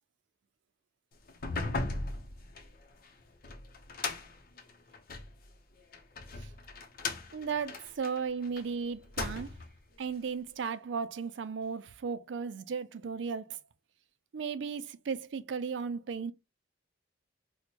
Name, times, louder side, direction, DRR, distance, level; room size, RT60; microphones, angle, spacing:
sound 1, 1.3-5.3 5.9-8.6 9.0-9.8, left 3 dB, 55° left, 0.7 m, -38 dB
voice 1, 7.3-9.5 10.0-13.6 14.3-16.3, right 5 dB, 80° right, 0.4 m, -35 dB
4.3 x 2.1 x 2.8 m
head